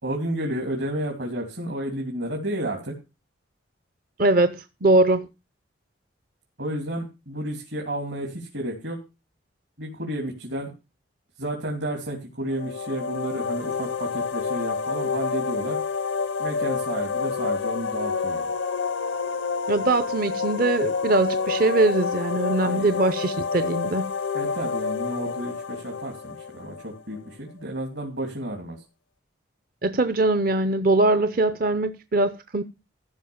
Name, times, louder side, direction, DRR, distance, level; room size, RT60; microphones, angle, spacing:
voice 1, 0.0-2.9 6.6-9.0 9.8-10.7 11.4-15.8 16.4-18.5 22.6-22.9 24.3-28.8, right 1 dB, 70° right, 3.1 m, -31 dB
voice 2, 4.2-5.3 19.7-24.1 29.8-32.6, right 2 dB, 50° right, 0.6 m, -22 dB
sound 1, 12.5-27.2, left 5 dB, 80° left, 0.7 m, -28 dB
14.5 x 5.6 x 7.0 m
head